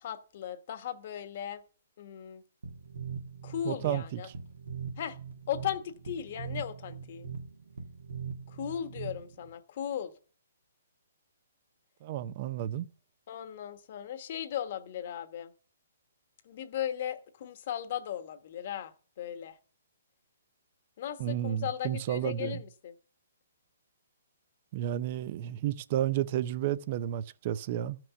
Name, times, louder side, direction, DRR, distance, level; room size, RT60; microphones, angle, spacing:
voice 1, 0.0-1.6 2.0-2.4 3.4-4.3 5.0-5.2 5.5-7.3 8.5-10.1 13.3-15.5 16.4-19.6 21.0-22.9, left 10 dB, 50° left, 1.2 m, -37 dB
sound 1, 2.6-9.5, right 6 dB, 85° right, 1.8 m, -41 dB
voice 2, 3.6-4.2 12.0-12.9 21.2-22.6 24.7-28.0, right 11 dB, 40° right, 0.5 m, -32 dB
14.0 x 6.0 x 6.9 m
hypercardioid pair, 150°, 0 cm